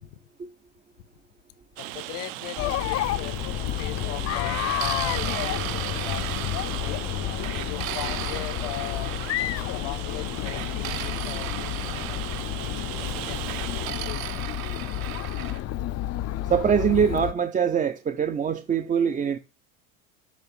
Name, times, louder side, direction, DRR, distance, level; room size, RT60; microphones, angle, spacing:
voice 1, 1.8-3.4 3.8-6.5 6.8-7.0 7.5-9.1 9.7-11.7 12.5-13.5 13.8-14.3 15.2-15.3, left 17 dB, 65° left, 0.8 m, -39 dB
Rain, 1.8-13.9, right 15 dB, 55° right, 0.8 m, -37 dB
Chatter, 2.6-17.3, left 13 dB, 40° left, 0.6 m, -30 dB
sound 1, 4.4-7.0 7.4-9.4 10.4-12.5 13.5-15.6, right 15 dB, 85° right, 0.6 m, -36 dB
voice 2, 16.4-19.4, right 7 dB, 20° right, 0.5 m, -23 dB
7.3 x 3.1 x 5.5 m
hypercardioid pair, 85°, 40 cm